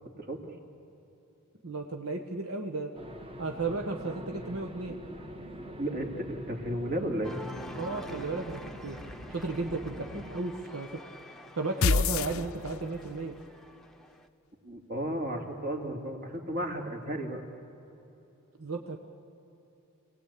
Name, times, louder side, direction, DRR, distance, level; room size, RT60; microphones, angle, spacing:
voice 1, 1.6-2.9 3.4-5.0 7.7-9.0 9.3-11.0 11.6-13.3 18.6-19.0, right 3 dB, 85° right, 3 dB, 1.2 m, -34 dB
sound 1, 2.9-10.4, equal, 25° right, 1.3 m, -44 dB
voice 2, 5.8-7.3 14.6-17.4, right 1 dB, 50° right, 2 dB, 2.6 m, -33 dB
Cheering, 7.2-14.3, left 1 dB, ahead, 0.8 m, -47 dB
sound 2, 11.8-13.1, left 5 dB, 80° left, 0.6 m, -26 dB
27.0 x 18.5 x 8.4 m, 3.0 s
head